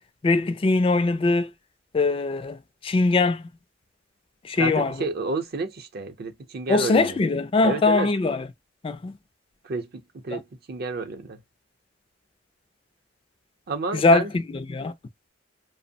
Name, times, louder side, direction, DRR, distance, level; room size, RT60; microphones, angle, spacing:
voice 1, 0.2-1.5 1.9-2.6 2.8-3.5 4.4-4.9 6.7-8.5 8.8-9.2 10.3-10.4 13.9-14.9, left 3 dB, 30° left, 0.3 m, -22 dB
voice 2, 4.6-7.2 7.6-8.1 9.6-11.4 13.7-14.3, right 3 dB, 55° right, 0.6 m, -30 dB
2.8 x 2.0 x 2.6 m
head